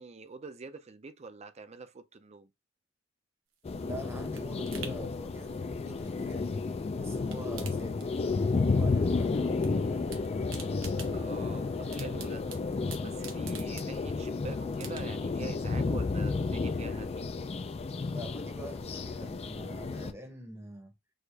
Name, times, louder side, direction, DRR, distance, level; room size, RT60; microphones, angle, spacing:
voice 1, 0.0-2.5 11.1-12.5 13.0-17.3, right 4 dB, 35° right, 0.5 m, -45 dB
sound 1, 3.5-6.8 7.1-8.6 8.9-9.7 9.9-14.3 14.7-15.4 15.8-15.9, right 6 dB, 85° right, 1.0 m, -49 dB
sound 2, 3.7-20.1, left 4 dB, 30° left, 0.4 m, -32 dB
voice 2, 3.8-6.5 6.9-8.2 8.6-10.1 18.1-20.9, right 1 dB, 15° right, 0.9 m, -45 dB
Race car auto racing, 6.4-17.0, right 2 dB, 70° right, 2.0 m, -59 dB
6.3 x 2.5 x 3.3 m
head